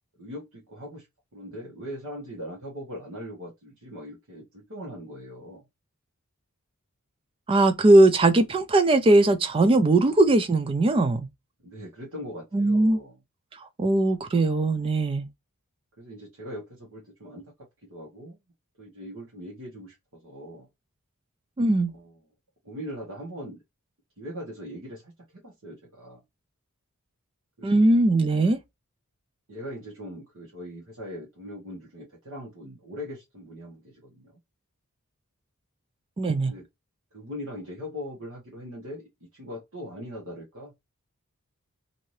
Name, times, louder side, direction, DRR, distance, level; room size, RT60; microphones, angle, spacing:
voice 1, 0.2-1.1 1.3-5.7 11.6-13.2 16.0-17.4 17.9-18.4 18.8-20.7 21.9-22.2 22.6-23.6 24.2-26.2 27.6-27.8 29.5-34.4 36.5-36.7 37.1-40.7, equal, 70° right, 1.1 m, -40 dB
voice 2, 7.5-11.3 12.5-13.0 13.8-15.3 21.6-21.9 27.6-28.6 36.2-36.5, right 2 dB, 25° right, 0.3 m, -20 dB
2.7 x 2.5 x 3.1 m
head